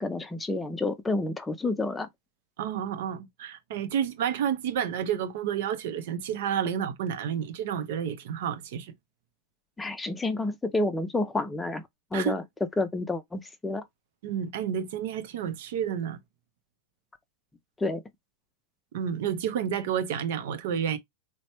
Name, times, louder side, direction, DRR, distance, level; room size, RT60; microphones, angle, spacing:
voice 1, 0.0-2.1 9.8-11.8 12.1-12.4 12.8-13.8 17.8-18.0, left 2 dB, 10° left, 0.4 m, -29 dB
voice 2, 2.6-8.9 12.1-12.3 14.2-16.2 18.9-21.0, right 8 dB, 65° right, 0.6 m, -30 dB
3.1 x 2.1 x 2.8 m
hypercardioid pair, 115°, 0 cm